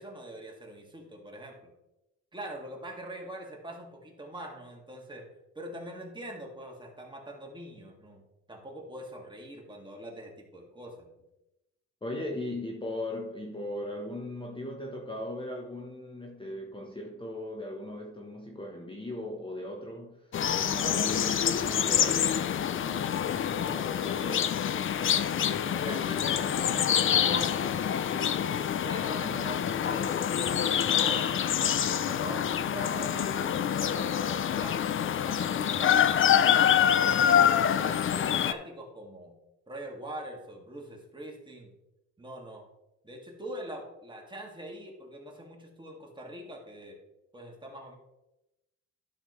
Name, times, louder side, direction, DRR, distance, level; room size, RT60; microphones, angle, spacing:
voice 1, 0.0-1.7 2.3-5.3 5.5-8.2 8.5-11.1 22.7-23.2 23.5-28.4 28.8-31.3 31.6-34.8 35.2-36.5 36.9-37.5 37.8-39.4 39.7-41.7 42.2-42.6 43.0-47.0 47.3-48.0, right 1 dB, 15° right, 0 dB, 2.3 m, -43 dB
voice 2, 12.0-22.4 29.2-29.5, left 1 dB, 15° left, 0 dB, 1.2 m, -38 dB
sound 1, 20.3-38.5, left 9 dB, 45° left, 0.5 m, -26 dB
11.5 x 6.4 x 3.3 m, 0.92 s
cardioid pair, 90°, 30 cm